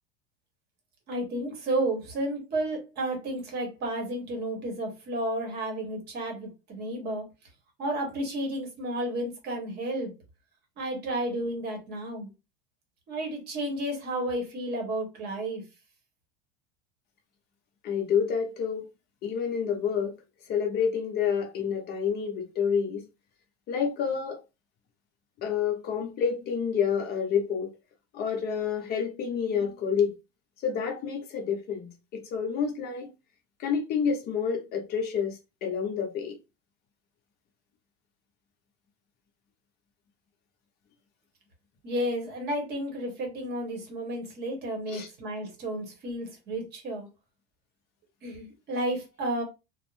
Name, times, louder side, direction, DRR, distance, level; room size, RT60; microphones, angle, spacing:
voice 1, 1.1-7.3 7.8-10.1 10.8-12.3 13.1-15.6 41.8-47.1 48.2-49.4, right 1 dB, 30° right, 0.9 m, -32 dB
voice 2, 17.8-18.9 19.2-20.2 20.5-23.1 23.7-24.4 25.4-27.7 28.1-30.1 30.6-33.1 33.6-36.4 44.9-45.1, left 7 dB, 30° left, 0.6 m, -28 dB
2.4 x 2.0 x 3.1 m
cardioid pair, 165°, 33 cm